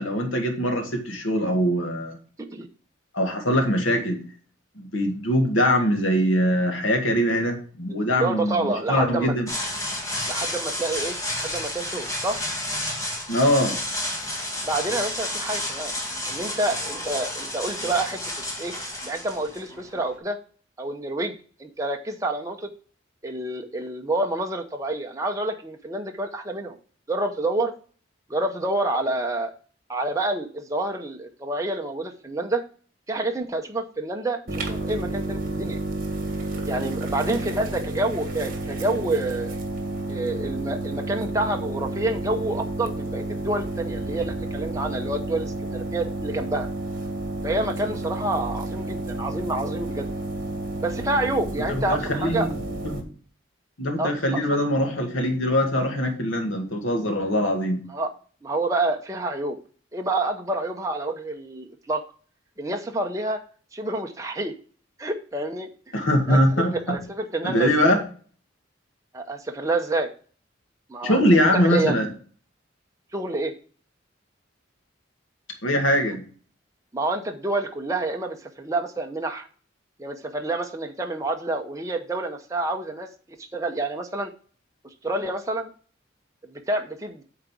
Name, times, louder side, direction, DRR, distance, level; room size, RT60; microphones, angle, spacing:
voice 1, 0.0-2.2 3.1-4.2 4.8-9.5 13.3-13.8 51.7-52.5 52.8-53.0 53.8-57.8 65.9-67.0 67.4-68.0 71.0-72.1 75.6-76.2, equal, 85° left, 4 dB, 2.0 m, -22 dB
voice 2, 8.1-9.3 10.3-12.4 14.6-15.9 16.3-18.7 19.1-20.4 20.8-21.3 21.6-22.7 23.2-26.8 27.1-27.7 28.3-29.5 29.9-32.6 33.1-35.8 36.7-39.5 40.1-46.7 47.4-50.1 50.8-52.5 54.0-54.4 57.9-58.1 58.4-59.6 59.9-62.0 62.6-63.4 63.7-64.5 65.0-65.9 66.3-68.0 69.1-70.1 70.9-71.2 71.5-72.0 73.1-73.5 76.9-79.5 80.0-83.1 83.4-84.3 85.0-85.7 86.4-87.2, right 2 dB, 15° right, 3 dB, 0.8 m, -28 dB
sound 1, 9.5-20.1, left 1 dB, 15° left, 1.5 m, -31 dB
sound 2, 34.5-53.0, right 2 dB, 45° right, 1.6 m, -31 dB
8.6 x 3.9 x 6.1 m, 0.42 s
head